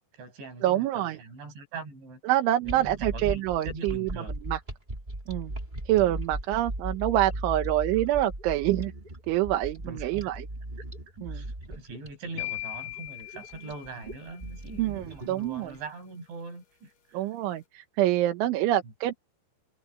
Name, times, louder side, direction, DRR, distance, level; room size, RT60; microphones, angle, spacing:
voice 1, 0.0-2.2 2.6-4.4 6.0-6.1 9.8-10.3 11.1-17.2 18.8-18.9, right 3 dB, 70° right, 10.5 m, -42 dB
voice 2, 0.6-1.2 2.3-4.1 4.5-4.6 5.3-5.5 5.9-8.9 9.3-10.5 11.2-11.4 14.8-15.7 17.1-19.1, right 14 dB, 90° right, 3.7 m, -26 dB
sound 1, 2.6-15.7, right 1 dB, 10° right, 3.0 m, -37 dB
sound 2, 12.4-14.5, left 23 dB, 50° left, 2.5 m, -39 dB
omnidirectional pair, 5.3 m